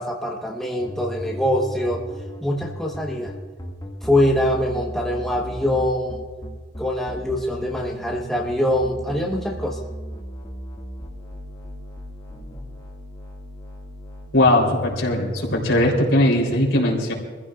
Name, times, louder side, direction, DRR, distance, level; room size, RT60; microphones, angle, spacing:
voice 1, 0.0-2.0 2.4-3.3 4.0-6.2 6.8-9.8, left 1 dB, ahead, -2 dB, 1.2 m, -23 dB
sound 1, 0.8-16.6, equal, 20° left, 2.1 m, -36 dB
voice 2, 14.3-17.1, left 1 dB, 80° left, -1 dB, 3.6 m, -19 dB
25.0 x 15.5 x 2.5 m, 1.4 s
head